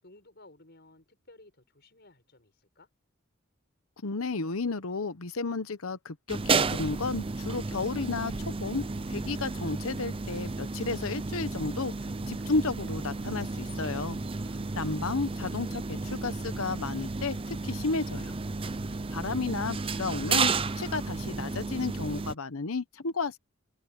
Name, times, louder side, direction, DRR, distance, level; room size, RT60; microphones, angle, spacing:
voice 1, 0.0-2.9, left 2 dB, 50° left, 6.6 m, -57 dB
voice 2, 4.0-8.3 8.6-11.9 12.3-14.2 14.8-18.3 19.1-23.4, left 3 dB, 85° left, 1.0 m, -32 dB
sound 1, 6.3-22.3, right 4 dB, 25° right, 0.6 m, -32 dB
head